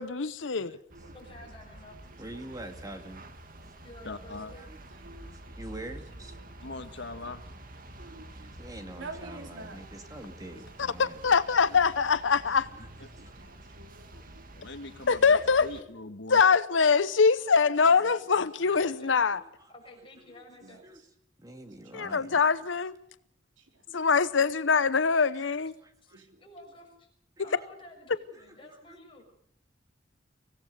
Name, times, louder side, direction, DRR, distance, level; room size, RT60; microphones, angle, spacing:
voice 1, 0.0-0.8 11.0-12.7 15.1-15.7 16.3-19.4 21.9-23.0 23.9-25.7, left 5 dB, 90° left, 0.8 m, -23 dB
voice 2, 0.5-1.5 1.9-2.4 4.9-5.6 6.2-6.5 8.0-8.3 9.0-9.8 10.8-11.1 13.1-14.5 17.9-18.4 20.6-21.1 21.7-22.5 23.6-24.0 26.1-26.4, right 2 dB, 80° right, 3.4 m, -50 dB
sound 1, 0.9-15.8, right 1 dB, 50° right, 2.0 m, -48 dB
voice 3, 1.1-2.0 3.8-4.7 14.7-15.1 18.7-19.1 19.7-20.8 26.0-26.1 26.4-27.1 27.4-29.2, left 1 dB, 30° left, 6.7 m, -51 dB
voice 4, 2.2-3.3 4.5-4.8 5.1-6.4 8.0-11.2 12.6-12.9 13.2-13.8 18.7-19.0 19.3-19.7 20.2-20.4 20.8-21.0 21.4-22.4 23.9-24.1 25.8-26.3 27.4-27.6 28.3-29.0, right 1 dB, 20° right, 2.2 m, -46 dB
voice 5, 4.0-4.5 6.6-7.4 11.7-11.8 14.5-16.4, left 3 dB, 70° left, 1.5 m, -41 dB
25.0 x 16.5 x 6.7 m
head